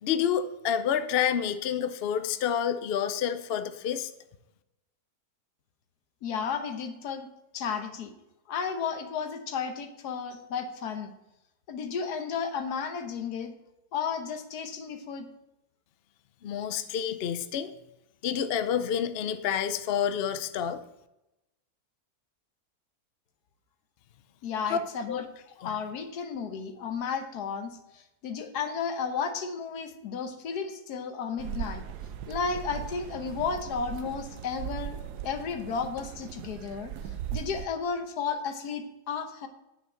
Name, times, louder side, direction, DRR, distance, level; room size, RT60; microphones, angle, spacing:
voice 1, 0.0-4.1 16.4-17.7 18.2-20.8 24.7-24.8 25.1-25.2 25.6-25.8, left 8 dB, 60° left, 11 dB, 0.6 m, -28 dB
voice 2, 6.2-7.3 7.5-8.1 8.5-11.1 11.7-13.5 13.9-15.3 24.4-25.3 25.6-31.8 32.3-35.0 35.2-36.9 37.3-39.5, left 6 dB, 80° left, 7 dB, 1.5 m, -33 dB
sound 1, 31.4-37.7, right 10 dB, 85° right, 1.2 m, -38 dB
8.7 x 6.4 x 4.4 m, 0.93 s
omnidirectional pair, 1.7 m